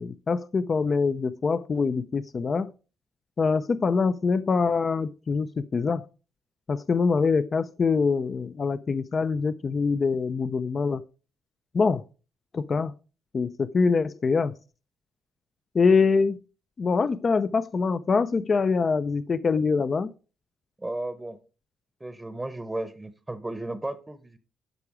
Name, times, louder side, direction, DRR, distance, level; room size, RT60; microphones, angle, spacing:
voice 1, 0.0-2.7 3.4-6.1 6.7-11.0 11.7-12.0 12.5-12.9 13.3-14.5 15.7-16.4 16.8-20.1, left 4 dB, 40° left, 0.5 m, -24 dB
voice 2, 20.8-21.4 22.0-24.4, right 2 dB, 15° right, 0.8 m, -34 dB
11.5 x 4.9 x 4.9 m
cardioid pair, 90°, 0 cm